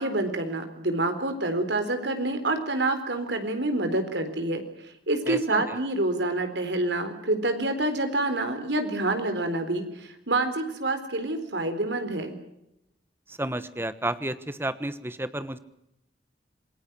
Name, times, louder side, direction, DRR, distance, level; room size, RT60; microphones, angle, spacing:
voice 1, 0.0-12.4, right 2 dB, 90° right, 8 dB, 4.2 m, -27 dB
voice 2, 5.3-5.8 13.3-15.6, right 1 dB, 15° right, 13 dB, 1.2 m, -31 dB
27.5 x 20.5 x 6.2 m, 0.82 s
head